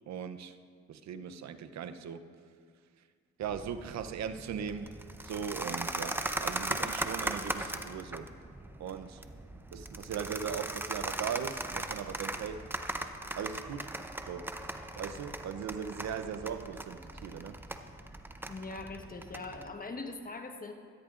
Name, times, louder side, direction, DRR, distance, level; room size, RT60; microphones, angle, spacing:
voice 1, 0.1-0.6 0.9-2.2 3.4-4.9 5.2-8.3 8.8-9.2 9.7-12.7 13.3-13.9 14.2-14.6 15.0-17.6, right 7 dB, 65° right, 11 dB, 0.7 m, -39 dB
sound 1, 3.4-19.7, right 1 dB, 5° right, 0.6 m, -39 dB
voice 2, 18.5-20.7, left 3 dB, 30° left, 5 dB, 1.2 m, -41 dB
17.0 x 13.5 x 2.5 m, 2.1 s
cardioid pair, 90°, 30 cm